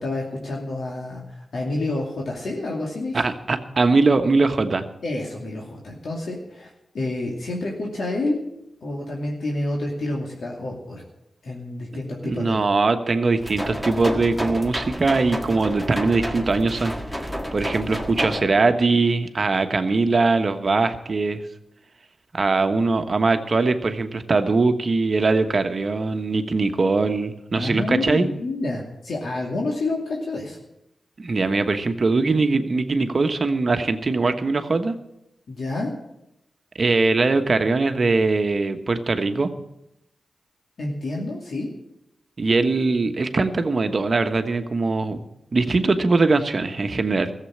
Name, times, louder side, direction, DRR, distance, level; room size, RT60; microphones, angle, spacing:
voice 1, 0.0-3.3 5.0-8.4 8.8-11.0 11.4-12.6 18.2-18.5 27.6-30.6 35.5-35.9 40.8-41.7, left 2 dB, 75° left, -2 dB, 2.5 m, -29 dB
voice 2, 3.1-4.8 12.2-16.9 17.5-21.4 22.3-28.3 31.2-34.9 36.8-39.5 42.4-45.2 45.5-47.3, right 3 dB, 50° right, 8 dB, 1.2 m, -21 dB
sound 1, 13.4-18.4, equal, 5° left, 1.6 m, -30 dB
14.5 x 7.7 x 8.5 m, 0.85 s
cardioid pair, 60°, 0 cm